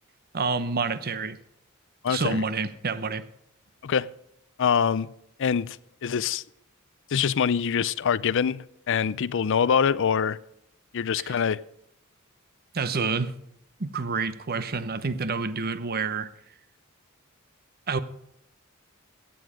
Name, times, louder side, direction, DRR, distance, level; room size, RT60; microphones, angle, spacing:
voice 1, 0.3-1.4 2.1-3.2 11.2-11.3 12.7-13.3 13.8-16.3 17.9-18.0, right 4 dB, 45° right, 0.8 m, -28 dB
voice 2, 2.0-2.4 3.8-4.1 4.6-5.1 5.4-5.8 6.0-6.4 7.1-10.4 10.9-11.6, left 7 dB, 60° left, 0.5 m, -24 dB
16.0 x 9.5 x 5.0 m
head